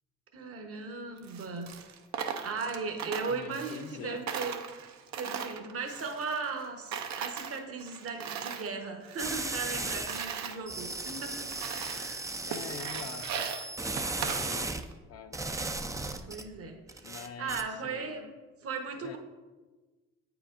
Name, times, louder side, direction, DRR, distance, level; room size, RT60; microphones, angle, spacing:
voice 1, 0.3-1.7 2.4-4.6 5.1-11.5 11.9-12.4 16.3-19.2, right 4 dB, 50° right, 4 dB, 1.0 m, -37 dB
Coin (dropping), 1.2-4.0 4.3-6.7 6.9-8.7 9.0-10.6 11.1-11.2 11.5-12.2 12.5-14.9, right 7 dB, 65° right, 0.6 m, -38 dB
voice 2, 3.3-4.2 12.5-13.6 14.0-15.4 17.0-18.3 18.9-19.2, left 6 dB, 55° left, 7 dB, 0.5 m, -45 dB
sound 1, 9.2-10.2 10.7-14.8 15.3-16.4 16.9-17.6, right 2 dB, 10° right, 0.4 m, -36 dB
8.3 x 4.9 x 2.5 m, 1.3 s
supercardioid pair, 75°, 30 cm